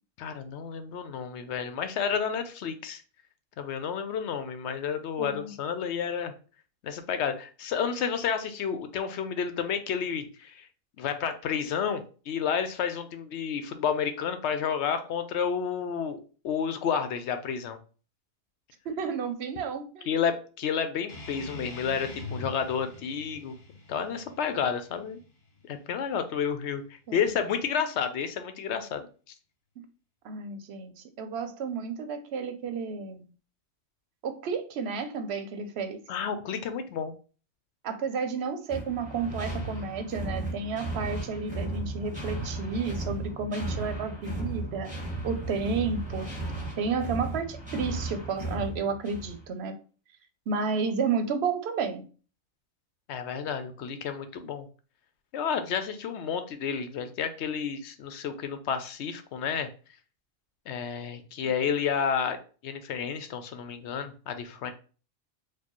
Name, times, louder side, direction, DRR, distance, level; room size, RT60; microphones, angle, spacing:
voice 1, 0.2-3.0 3.6-6.3 6.8-10.7 11.0-17.8 20.1-23.5 23.9-25.2 25.7-26.8 27.1-29.1 36.1-37.1 53.1-54.7 55.3-59.7 60.7-64.7, left 7 dB, 80° left, 9 dB, 0.9 m, -31 dB
voice 2, 5.2-5.5 18.9-20.1 27.1-27.3 29.8-29.9 30.2-33.3 34.2-36.0 37.8-44.9 45.2-46.3 46.8-49.8 50.5-52.0, right 5 dB, 70° right, 9 dB, 0.8 m, -31 dB
sound 1, 21.1-26.1, left 2 dB, 65° left, 1.2 m, -43 dB
sound 2, 38.7-49.4, right 2 dB, 5° right, 1.1 m, -35 dB
4.4 x 2.3 x 2.9 m, 0.37 s
omnidirectional pair, 1.1 m